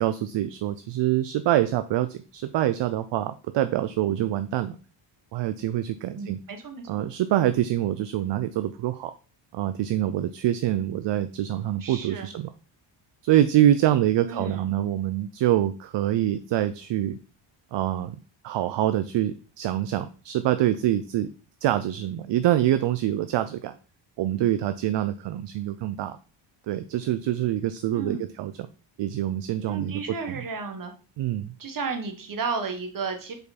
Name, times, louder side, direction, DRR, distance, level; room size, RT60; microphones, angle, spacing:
voice 1, 0.0-4.8 5.3-6.4 6.9-9.1 9.5-12.5 13.2-17.2 17.7-18.2 18.4-21.3 21.6-23.7 24.2-26.2 26.7-28.7 29.0-30.0 30.3-30.4 31.2-31.5, right 12 dB, 60° right, 11 dB, 0.5 m, -25 dB
voice 2, 6.1-6.9 11.8-12.3 14.2-14.6 27.9-28.2 29.7-30.9 31.6-33.3, right 4 dB, 40° right, 5 dB, 1.3 m, -33 dB
5.2 x 4.6 x 4.2 m, 0.36 s
cardioid pair, 110°, 48 cm